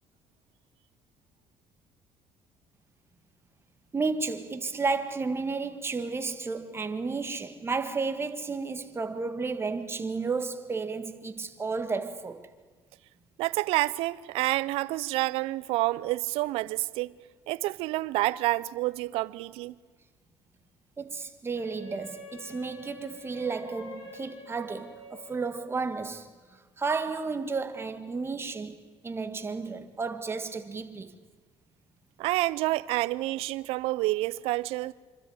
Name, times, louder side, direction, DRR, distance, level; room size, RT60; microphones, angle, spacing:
voice 1, 3.9-12.5 21.0-28.8 29.0-31.2, right 4 dB, 25° right, 1.8 m, -32 dB
voice 2, 13.4-17.1 17.5-19.7 32.2-34.9, right 19 dB, 85° right, 0.6 m, -28 dB
Wind instrument woodwind instrument, 21.6-25.7, left 1 dB, 50° left, 7.3 m, -47 dB
26.0 x 13.0 x 9.5 m
cardioid pair, 95°, 10 cm